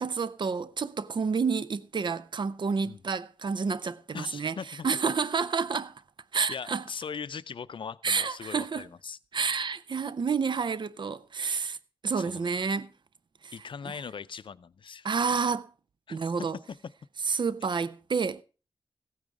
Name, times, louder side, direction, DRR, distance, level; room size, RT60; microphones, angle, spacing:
voice 1, 0.0-6.0 6.3-6.8 8.0-8.9 9.3-11.8 12.0-12.9 13.4-13.5 13.9-14.0 15.0-15.7 16.1-16.6 17.2-18.4, right 5 dB, 60° right, 0.6 m, -29 dB
voice 2, 4.1-4.9 6.5-9.2 12.2-12.5 13.5-15.1 16.1-16.3, left 6 dB, 70° left, 0.5 m, -40 dB
15.0 x 9.2 x 4.8 m
wide cardioid pair, 90°, 9 cm